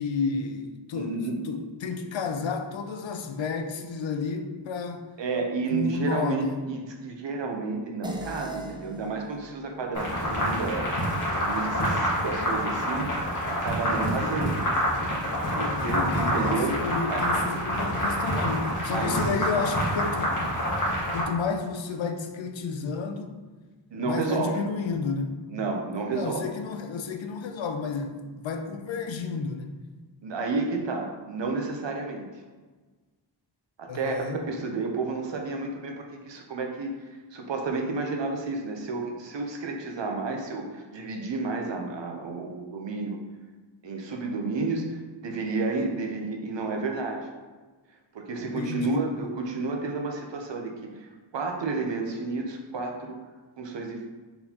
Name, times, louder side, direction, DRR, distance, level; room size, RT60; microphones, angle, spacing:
voice 1, 0.0-1.2 1.4-5.0 5.7-6.6 14.2-14.5 15.4-20.4 21.1-23.3 24.0-25.4 26.1-29.8 33.9-34.4 48.5-49.1, left 4 dB, 90° left, 7 dB, 0.6 m, -31 dB
voice 2, 0.9-1.4 5.2-14.6 15.6-16.8 17.1-17.2 18.9-19.2 23.9-24.6 25.5-26.5 30.2-32.3 33.8-43.2 43.8-45.0 45.2-47.3 48.1-53.3 53.6-54.1, right 3 dB, 75° right, 2 dB, 0.8 m, -31 dB
sound 1, 8.0-12.8, right 1 dB, 10° right, 0.4 m, -43 dB
sound 2, 9.9-21.2, equal, 45° left, 1.4 m, -27 dB
4.1 x 3.9 x 2.9 m, 1.3 s
wide cardioid pair, 85°, 44 cm